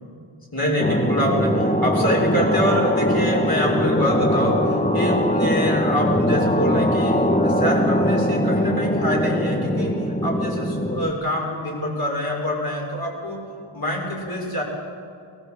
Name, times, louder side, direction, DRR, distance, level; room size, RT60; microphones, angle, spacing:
voice 1, 0.5-10.0 10.2-13.4 13.7-14.6, equal, 45° left, -2 dB, 6.7 m, -25 dB
sound 1, 0.8-11.1, equal, 15° left, 1.7 m, -21 dB
22.0 x 19.5 x 8.1 m, 2.3 s
wide cardioid pair, 45°, 49 cm